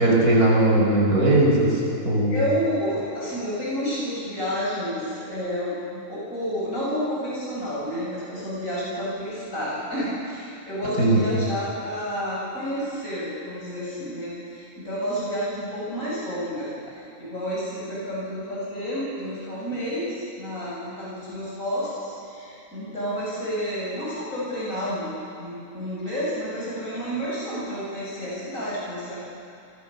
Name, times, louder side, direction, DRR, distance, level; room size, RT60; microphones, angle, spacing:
voice 1, 0.0-2.3 11.0-11.2, right 2 dB, 85° right, -3 dB, 6.4 m, -19 dB
voice 2, 2.3-25.1 25.4-29.2, equal, 65° left, -7 dB, 8.4 m, -30 dB
28.0 x 22.5 x 7.2 m, 2.6 s
omnidirectional pair, 1.5 m